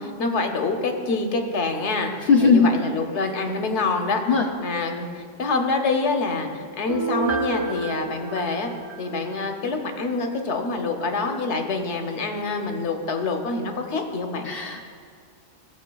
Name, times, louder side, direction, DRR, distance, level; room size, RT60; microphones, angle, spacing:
voice 1, 0.0-2.1 2.4-4.2 4.6-8.7 9.0-14.5, left 3 dB, 80° left, 4 dB, 1.1 m, -26 dB
voice 2, 2.3-2.7 4.3-4.5 14.4-14.8, left 5 dB, 60° left, 1 dB, 0.7 m, -17 dB
Piano, 6.9-9.6 10.0-10.1, right 3 dB, 30° right, 0.7 m, -30 dB
15.5 x 7.2 x 2.3 m, 2.1 s
omnidirectional pair, 1.2 m